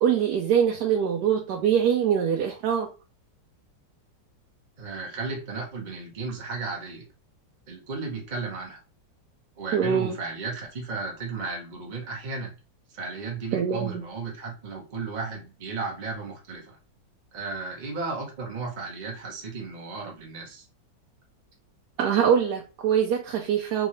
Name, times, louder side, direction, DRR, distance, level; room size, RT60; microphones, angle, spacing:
voice 1, 0.0-2.9 9.7-10.1 13.5-14.0 22.0-23.9, right 8 dB, 70° right, 1 dB, 1.1 m, -23 dB
voice 2, 4.8-7.0 7.7-8.8 9.6-12.5 12.9-16.8 17.3-20.7, right 4 dB, 35° right, -1 dB, 0.7 m, -34 dB
3.6 x 3.1 x 3.1 m, 0.32 s
omnidirectional pair, 2.0 m